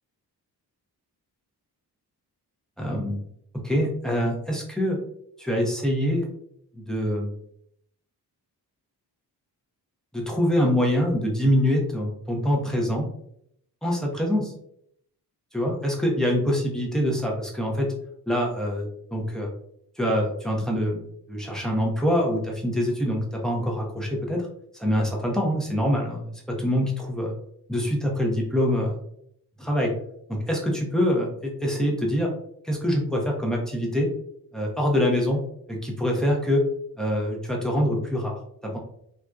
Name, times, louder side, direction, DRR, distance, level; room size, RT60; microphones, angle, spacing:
voice 1, 2.8-3.2 3.5-5.0 5.4-6.3 6.9-7.3 10.1-13.1 13.8-14.5 15.5-17.9 18.3-19.5 20.0-24.5 24.8-27.3 27.7-29.0 29.6-29.9 30.3-32.3 32.6-34.1 34.5-35.4 35.7-36.6 37.0-38.4 38.6-38.8, equal, ahead, -2 dB, 0.6 m, -25 dB
2.6 x 2.3 x 2.2 m, 0.70 s
wide cardioid pair, 95°, 39 cm